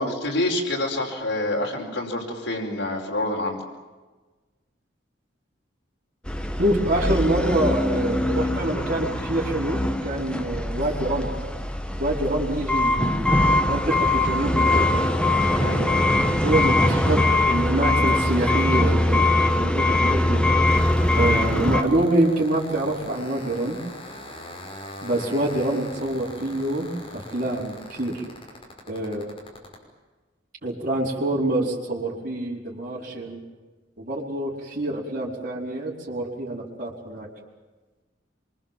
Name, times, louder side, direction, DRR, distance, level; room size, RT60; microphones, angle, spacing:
voice 1, 0.0-3.6 15.6-15.8, left 1 dB, 85° left, -2 dB, 5.1 m, -27 dB
sound 1, 6.3-21.8, left 1 dB, 5° left, 1.5 m, -22 dB
voice 2, 6.6-11.3 12.0-15.1 15.7-20.5 21.1-23.8 25.0-28.2 28.9-29.3 30.6-33.4 34.0-37.3, right 1 dB, 45° right, -5 dB, 4.9 m, -26 dB
sound 2, 20.6-29.7, left 1 dB, 30° left, 5.9 m, -41 dB
25.5 x 24.0 x 7.6 m, 1.3 s
head